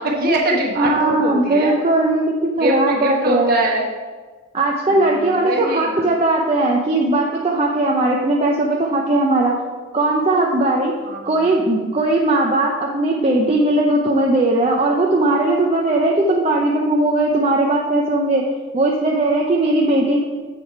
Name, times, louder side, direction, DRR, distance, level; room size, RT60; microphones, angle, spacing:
voice 1, 0.0-1.7 2.6-3.9 4.9-6.1 11.0-11.5, right 1 dB, 50° right, -2 dB, 1.4 m, -22 dB
voice 2, 0.8-3.5 4.5-9.6 9.9-10.9 11.3-18.5 18.7-20.2, right 2 dB, 30° right, -1 dB, 0.5 m, -18 dB
7.4 x 4.8 x 4.6 m, 1.4 s
head